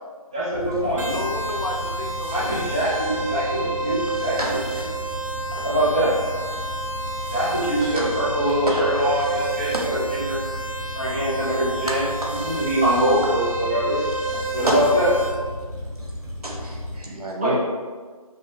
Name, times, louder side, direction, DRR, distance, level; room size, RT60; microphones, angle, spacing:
voice 1, 0.3-1.0 2.3-4.6 5.6-6.1 7.3-10.4 10.9-12.0 12.4-14.0 14.5-15.1 17.4-17.6, equal, 10° right, -12 dB, 0.7 m, -23 dB
sound 1, 0.5-17.0, equal, 30° right, 1.2 m, -34 dB
sound 2, 1.0-15.3, right 2 dB, 60° right, 1.2 m, -30 dB
voice 2, 1.1-3.4, left 2 dB, 70° left, -1 dB, 0.9 m, -33 dB
voice 3, 4.1-4.9 5.5-5.7 6.5-6.6 7.2-7.3 7.9-8.0 8.7-8.9 9.7-10.0 11.9-12.3 14.3-14.8 16.0-16.1 16.4-17.6, right 1 dB, 80° right, -1 dB, 1.1 m, -30 dB
5.4 x 2.3 x 3.1 m, 1.5 s
figure-of-eight pair, 165°, 19 cm